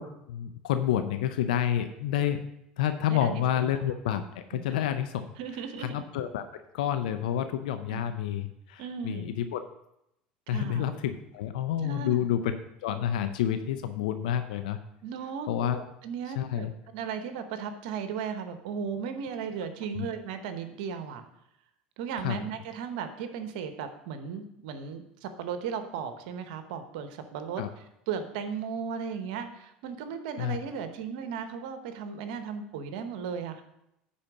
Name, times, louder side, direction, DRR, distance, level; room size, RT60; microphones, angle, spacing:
voice 1, 0.3-2.5 2.8-5.2 5.8-6.4 6.7-9.6 10.5-12.5 12.8-14.8 15.5-15.8 16.4-16.7 19.9-20.1 22.2-22.4 27.6-27.7 30.4-30.6, left 10 dB, 75° left, 9 dB, 0.5 m, -29 dB
voice 2, 3.1-3.8 4.5-4.6 5.4-6.0 7.9-8.1 8.8-9.3 10.5-10.9 11.8-12.2 15.0-15.5 15.7-16.7 16.9-21.2 22.0-27.6 28.1-33.6, right 7 dB, 70° right, 9 dB, 1.0 m, -36 dB
9.8 x 4.3 x 6.1 m, 0.82 s
hypercardioid pair, 80°, 4 cm